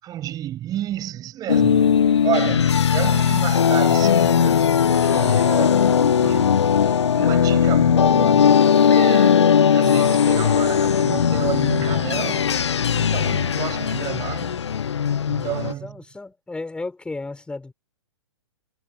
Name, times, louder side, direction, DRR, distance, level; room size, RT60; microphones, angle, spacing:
voice 1, 0.0-14.6 15.3-16.0, right 12 dB, 25° right, 6.8 m, -31 dB
sound 1, 1.5-15.7, left 7 dB, 70° left, 0.9 m, -18 dB
voice 2, 5.5-6.1 15.8-17.7, left 3 dB, 5° left, 6.0 m, -34 dB
figure-of-eight pair, 115°, 15 cm